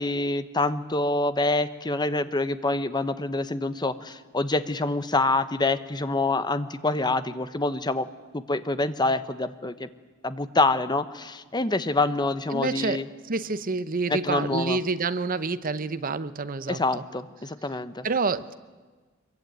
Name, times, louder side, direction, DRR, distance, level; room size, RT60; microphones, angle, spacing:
voice 1, 0.0-8.1 8.3-9.9 10.2-13.0 14.1-14.8 16.7-18.1, left 2 dB, 20° left, 12 dB, 1.0 m, -26 dB
voice 2, 12.5-17.0 18.0-18.5, right 4 dB, 45° right, 13 dB, 0.9 m, -28 dB
24.0 x 23.0 x 9.3 m, 1.4 s
head